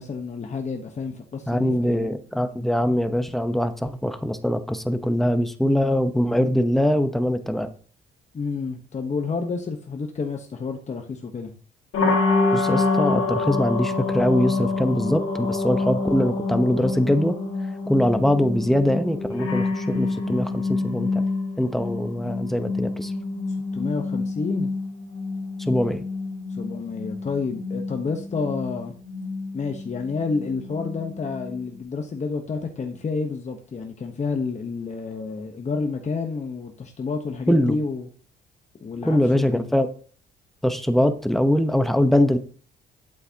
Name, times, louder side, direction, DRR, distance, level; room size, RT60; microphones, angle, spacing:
voice 1, 0.0-2.1 8.3-11.5 23.7-24.7 26.5-28.9 29.5-38.1 38.8-39.7, left 4 dB, 35° left, 4 dB, 1.1 m, -29 dB
voice 2, 1.5-7.7 12.5-17.4 17.9-21.2 21.6-23.1 25.6-26.1 37.5-37.8 39.0-39.9 40.6-42.4, left 1 dB, ahead, 9 dB, 0.9 m, -22 dB
sound 1, 11.9-31.8, left 3 dB, 75° left, 2.0 m, -27 dB
8.9 x 7.9 x 2.9 m, 0.43 s
cardioid pair, 90°, 20 cm